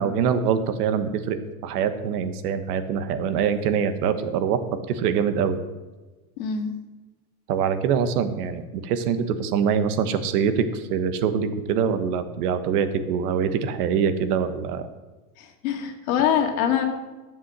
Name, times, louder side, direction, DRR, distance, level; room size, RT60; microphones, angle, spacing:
voice 1, 0.0-5.6 7.5-14.9, right 7 dB, 80° right, 10 dB, 1.4 m, -24 dB
voice 2, 6.4-6.7 15.4-16.8, left 8 dB, 65° left, 5 dB, 2.1 m, -24 dB
12.5 x 7.4 x 6.1 m, 1.2 s
supercardioid pair, 175°, 45 cm